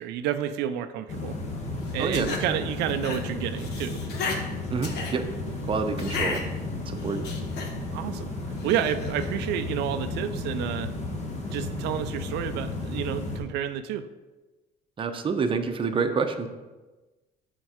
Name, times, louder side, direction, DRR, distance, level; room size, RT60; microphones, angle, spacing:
voice 1, 0.0-1.3 1.9-4.0 7.9-8.3 8.6-10.9 11.5-14.1, right 10 dB, 85° right, 10 dB, 0.4 m, -30 dB
sound 1, 1.1-13.4, left 2 dB, 40° left, 1.3 m, -33 dB
sound 2, 1.9-2.4 2.9-3.2 3.5-4.4 4.8-5.1 6.0-6.4 7.0-7.7 8.6-9.3, left 4 dB, 80° left, 1.1 m, -33 dB
voice 2, 2.0-2.6 4.7-5.2 5.6-6.4 6.9-7.3 15.0-16.5, right 5 dB, 30° right, 6 dB, 0.6 m, -28 dB
6.2 x 4.4 x 5.0 m, 1.2 s
cardioid pair, 110°, 17 cm